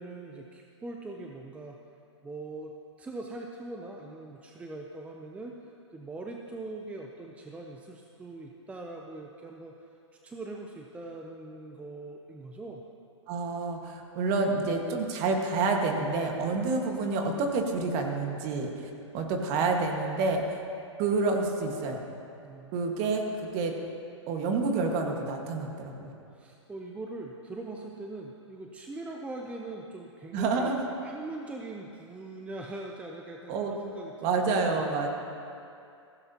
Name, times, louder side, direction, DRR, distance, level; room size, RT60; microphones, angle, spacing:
voice 1, 0.0-1.8 2.2-2.7 3.0-9.7 10.2-12.8 16.4-16.6 22.4-22.7 26.3-30.7 31.0-34.8, right 2 dB, 10° right, 1 dB, 0.6 m, -42 dB
voice 2, 13.3-18.7 19.1-20.4 21.0-22.0 22.7-23.8 24.3-26.1 30.3-30.9 33.5-33.7 34.2-35.1, right 3 dB, 40° right, 2 dB, 1.6 m, -28 dB
15.5 x 15.5 x 2.9 m, 2.6 s
hypercardioid pair, 125°, 16 cm